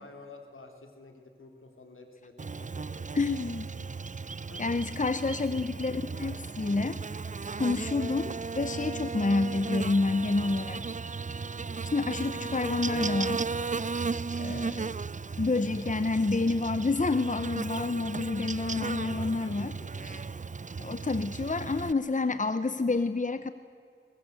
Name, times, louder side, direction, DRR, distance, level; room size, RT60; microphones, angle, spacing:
voice 1, 0.0-3.2 4.5-4.8 5.5-5.7 7.9-8.2 9.3-9.6 14.5-14.7 18.6-20.2, left 3 dB, 85° left, 4 dB, 3.4 m, -51 dB
Buzz, 2.4-21.9, right 4 dB, 40° right, 0.5 m, -35 dB
voice 2, 3.1-3.7 4.6-7.0 7.6-10.8 11.8-13.4 14.4-14.9 15.4-19.7 20.0-20.2 20.8-23.5, left 3 dB, 40° left, 12 dB, 1.0 m, -29 dB
22.0 x 21.0 x 8.1 m, 2.4 s
wide cardioid pair, 50°, 20 cm